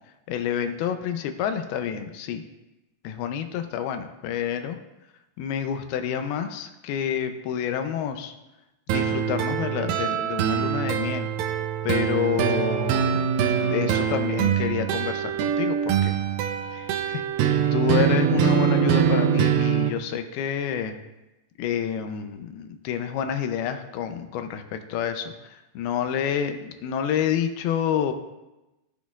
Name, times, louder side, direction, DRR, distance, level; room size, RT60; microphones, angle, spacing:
voice 1, 0.3-2.4 3.0-4.8 5.4-8.3 8.9-11.3 11.8-13.3 13.6-16.2 16.7-20.9 21.6-28.1, left 8 dB, 80° left, 7 dB, 2.5 m, -28 dB
sound 1, 8.9-19.9, right 8 dB, 85° right, 2.1 m, -23 dB
16.5 x 6.1 x 2.4 m, 1.0 s
omnidirectional pair, 4.5 m